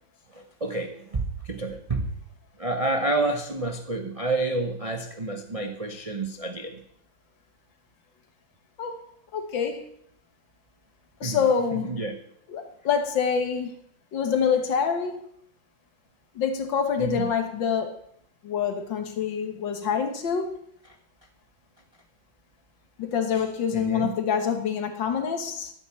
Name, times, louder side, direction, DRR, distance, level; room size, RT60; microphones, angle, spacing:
voice 1, 0.6-2.1 2.6-6.8 11.2-11.4 12.0-12.1 17.0-17.3 23.7-24.2, right 2 dB, 50° right, 5 dB, 0.4 m, -29 dB
voice 2, 9.3-9.9 11.2-11.9 12.5-13.7 14.1-15.3 16.4-18.0 18.4-20.6 23.0-25.7, left 7 dB, 70° left, 6 dB, 2.0 m, -26 dB
10.5 x 9.0 x 7.1 m, 0.71 s
omnidirectional pair, 2.1 m